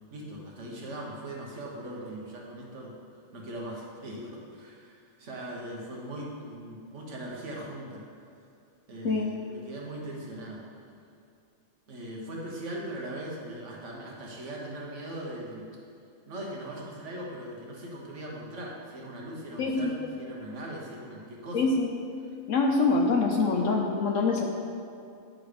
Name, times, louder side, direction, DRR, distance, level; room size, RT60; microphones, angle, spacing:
voice 1, 0.1-2.9 3.3-8.1 8.9-10.6 11.9-15.7 16.3-21.6, right 1 dB, 60° right, -3 dB, 1.5 m, -40 dB
voice 2, 19.6-19.9 21.5-21.9 22.5-24.4, left 3 dB, 65° left, 1 dB, 0.9 m, -25 dB
9.9 x 3.9 x 5.0 m, 2.5 s
omnidirectional pair, 1.5 m